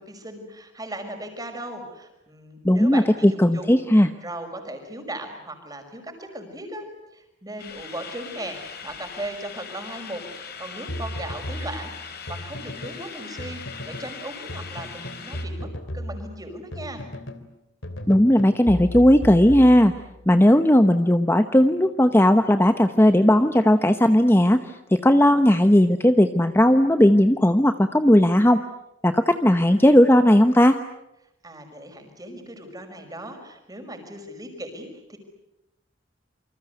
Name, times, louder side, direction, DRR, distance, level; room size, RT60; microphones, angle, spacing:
voice 1, 0.0-3.8 4.2-6.9 7.1-17.0 31.4-35.2, right 1 dB, 20° right, 5 dB, 5.8 m, -37 dB
voice 2, 2.6-4.1 18.1-19.9 20.3-28.6 29.0-30.8, left 1 dB, 10° left, 8 dB, 0.9 m, -17 dB
sound 1, 7.6-15.4, left 6 dB, 55° left, 4.8 m, -40 dB
sound 2, 10.9-13.0 13.4-14.1 14.5-17.5 17.8-20.2, left 1 dB, 85° left, 3.1 m, -35 dB
28.5 x 25.5 x 8.1 m, 0.87 s
head